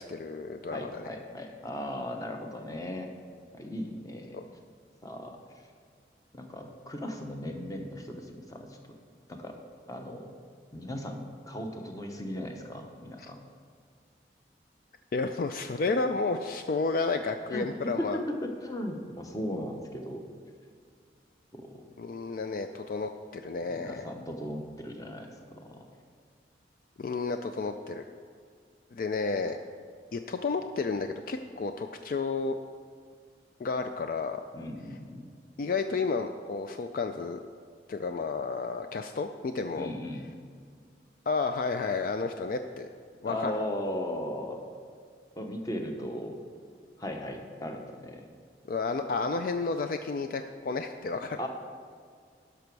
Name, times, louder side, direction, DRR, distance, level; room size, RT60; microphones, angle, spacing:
voice 1, 0.0-1.0 4.3-4.4 13.2-13.3 15.1-18.2 22.0-24.1 27.0-28.0 28.9-29.6 30.1-32.6 33.6-34.4 35.6-37.4 37.9-39.9 41.3-42.9 43.2-43.5 48.7-51.4, left 4 dB, 50° left, 7 dB, 0.3 m, -31 dB
voice 2, 0.7-3.1 3.5-4.4 5.0-5.4 6.3-8.9 9.3-9.5 9.9-10.3 10.7-13.4 17.5-20.3 21.5-21.8 23.7-25.9 34.5-35.3 39.7-40.3 43.2-44.6 45.4-46.4 47.0-48.2 51.4-51.5, left 1 dB, 20° left, 3 dB, 0.8 m, -37 dB
12.0 x 6.0 x 4.6 m, 2.1 s
head